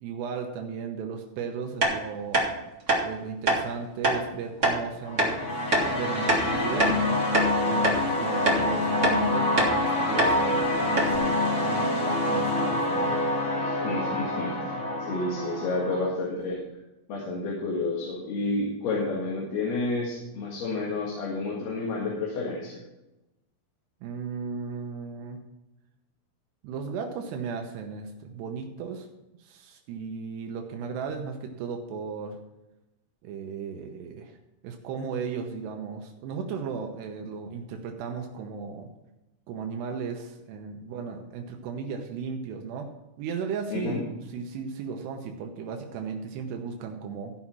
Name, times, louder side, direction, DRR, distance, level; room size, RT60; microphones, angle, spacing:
voice 1, 0.0-2.5 3.0-5.5 5.8-7.3 7.6-11.2 11.6-13.2 24.0-25.4 26.6-29.1 29.4-32.4 33.2-34.4 34.6-38.9 39.5-47.3, right 6 dB, 85° right, 3 dB, 3.1 m, -35 dB
sound 1, 1.8-1.9 2.3-2.5 2.9-3.0 3.5-3.6 4.0-4.2 4.6-4.8 5.2-5.3 5.7-5.9 6.3-7.0 7.3-7.5 7.8-8.0 8.5-8.6 9.0-9.2 9.6-9.7 10.2-10.3 10.6-10.7 11.0-11.2, right 1 dB, 45° right, 0.9 m, -23 dB
sound 2, 5.0-16.1, left 1 dB, 55° left, 0.8 m, -26 dB
voice 2, 13.5-16.6 17.1-22.8 43.7-44.0, left 3 dB, 70° left, -3 dB, 3.8 m, -30 dB
15.0 x 5.7 x 6.0 m, 0.97 s
omnidirectional pair, 4.8 m